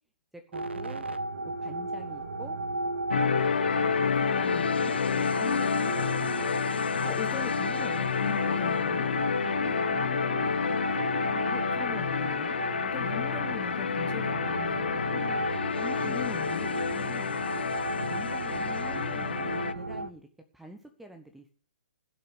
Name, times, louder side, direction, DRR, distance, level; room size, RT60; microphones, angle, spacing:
voice 1, 0.3-1.0 1.4-2.6 5.1-6.4 8.2-8.7 9.4-10.9 11.3-11.5 13.0-13.2 15.1-17.7 18.1-20.3 20.5-21.5, right 1 dB, 5° right, 6 dB, 0.9 m, -47 dB
sound 1, 0.5-20.1, right 2 dB, 70° right, 1.1 m, -35 dB
sound 2, 3.1-19.7, left 6 dB, 65° left, 0.7 m, -29 dB
voice 2, 4.1-5.0 7.0-8.1 8.4-9.1 11.5-15.0 16.0-16.7 18.6-19.5, left 9 dB, 15° left, 8 dB, 1.3 m, -42 dB
15.5 x 6.8 x 6.2 m, 0.42 s
figure-of-eight pair, 120°, 6 cm